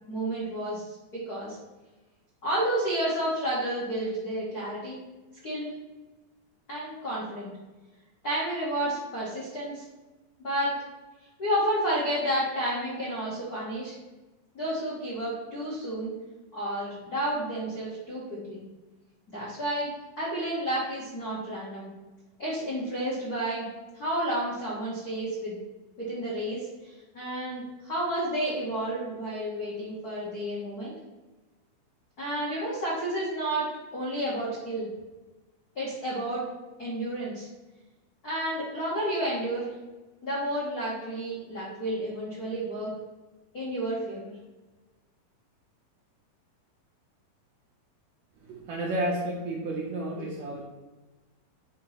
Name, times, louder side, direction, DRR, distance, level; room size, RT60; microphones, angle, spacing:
voice 1, 0.1-1.6 2.4-5.0 5.4-5.7 6.7-7.5 8.2-9.8 10.4-10.7 11.4-13.9 14.5-16.1 16.5-18.6 19.3-19.9 20.2-21.9 22.4-23.7 23.9-25.6 26.0-30.9 32.2-33.7 33.9-34.9 35.7-36.4 36.8-37.5 38.2-39.7 40.2-42.9 43.5-44.3, right 1 dB, 70° left, -7 dB, 0.9 m, -31 dB
voice 2, 48.5-50.6, right 1 dB, 70° right, -3 dB, 1.7 m, -31 dB
7.4 x 3.0 x 5.6 m, 1.1 s
omnidirectional pair, 4.2 m